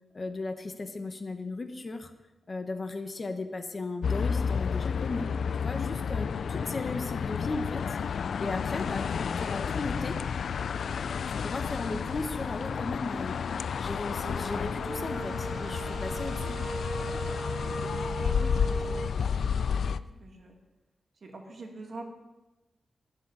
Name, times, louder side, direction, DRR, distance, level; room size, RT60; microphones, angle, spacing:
voice 1, 0.1-2.1 2.5-10.2 11.3-13.4 13.8-16.6, left 3 dB, 35° left, 7 dB, 1.0 m, -36 dB
sound 1, 4.0-20.0, left 6 dB, 75° left, 0.3 m, -31 dB
voice 2, 6.0-6.3 6.6-6.8 17.6-20.6 21.2-22.0, right 2 dB, 50° right, 2 dB, 2.2 m, -46 dB
sound 2, 14.2-19.1, right 3 dB, 35° right, 0.9 m, -38 dB
sound 3, 15.4-19.8, right 1 dB, 90° right, 3.0 m, -51 dB
12.0 x 7.2 x 10.0 m, 1.1 s
wide cardioid pair, 150°, 0 cm